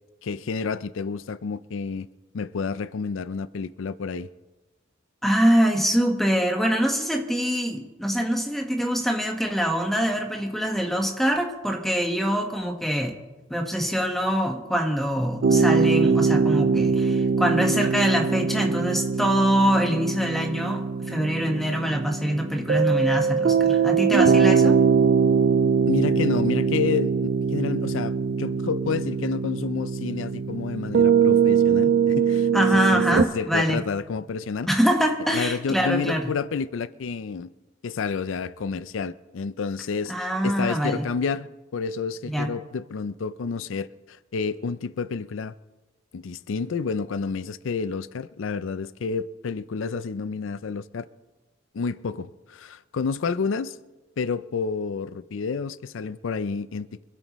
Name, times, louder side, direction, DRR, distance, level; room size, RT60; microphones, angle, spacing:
voice 1, 0.2-2.1 2.3-4.3 25.9-34.7 35.3-37.5 37.8-45.5 46.1-51.1 51.7-53.8 54.2-56.9, left 5 dB, 85° left, 0.4 m, -30 dB
voice 2, 5.2-13.1 13.5-24.8 32.5-33.8 34.7-36.3 40.1-41.1 42.2-42.5, equal, ahead, 1.3 m, -24 dB
sound 1, 15.4-33.2, right 5 dB, 50° right, 0.4 m, -22 dB
25.0 x 12.5 x 3.1 m
head